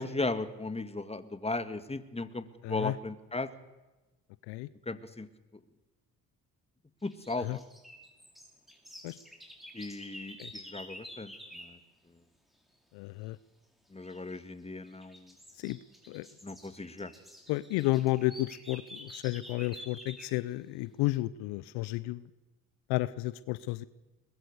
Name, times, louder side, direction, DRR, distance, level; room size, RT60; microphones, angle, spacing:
voice 1, 0.0-3.5 4.9-5.3 7.0-7.6 9.7-11.3 11.6-11.8 13.9-15.3 16.4-17.1, left 3 dB, 15° left, 11 dB, 2.0 m, -36 dB
voice 2, 2.6-2.9 4.5-4.7 7.4-7.6 9.0-9.2 10.4-10.5 12.9-13.4 15.6-15.8 16.1-16.3 17.5-22.2 22.9-23.8, left 18 dB, 75° left, 17 dB, 0.7 m, -32 dB
sound 1, 7.0-11.8 14.0-14.4 14.8-20.4, equal, ahead, 5.2 m, -49 dB
22.0 x 21.0 x 6.7 m, 1.1 s
hypercardioid pair, 55°, 40 cm